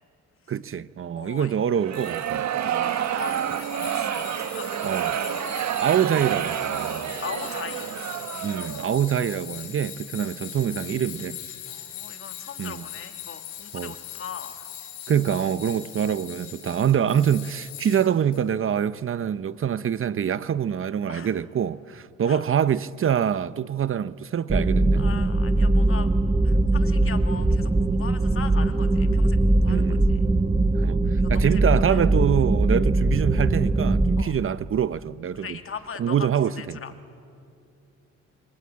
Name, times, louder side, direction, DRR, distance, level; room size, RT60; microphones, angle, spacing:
voice 1, 0.5-2.5 4.8-5.2 5.8-7.1 8.4-11.4 12.6-12.9 13.7-13.9 15.1-25.1 29.7-30.1 30.8-35.6 36.0-36.8, right 8 dB, 45° right, 0.7 m, -25 dB
voice 2, 1.2-1.5 2.6-4.9 7.2-7.9 10.2-10.3 11.7-14.7 21.1-21.4 22.2-22.4 24.9-26.1 26.4-30.2 31.2-32.0 34.2-34.3 35.4-36.3 36.6-36.9, left 7 dB, 45° left, 2.1 m, -40 dB
sound 1, 1.7-9.0, right 10 dB, 65° right, 1.5 m, -29 dB
Tools, 1.9-18.4, left 11 dB, 85° left, 6.2 m, -41 dB
sound 2, 24.5-34.2, right 2 dB, 15° right, 0.8 m, -21 dB
27.0 x 25.0 x 8.7 m
cardioid pair, 90°, 30 cm